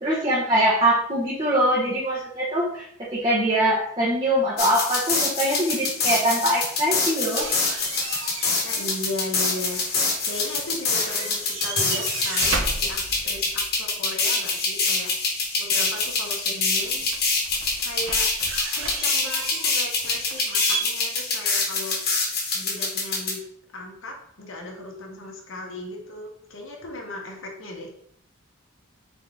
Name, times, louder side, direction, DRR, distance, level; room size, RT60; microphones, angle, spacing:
voice 1, 0.0-7.5, right 1 dB, 25° right, -7 dB, 1.0 m, -23 dB
sound 1, 4.6-23.3, left 3 dB, 50° left, 1.2 m, -25 dB
sound 2, 7.3-9.0 9.2-10.7 10.9-13.7 16.0-16.1 16.8-20.8, right 4 dB, 70° right, 0.6 m, -34 dB
voice 2, 8.6-9.8 10.2-15.1 15.6-17.1 17.8-18.3 18.8-22.0 22.5-23.4 23.7-27.9, left 1 dB, 75° left, 1 dB, 1.0 m, -36 dB
3.9 x 3.7 x 3.6 m, 0.69 s
head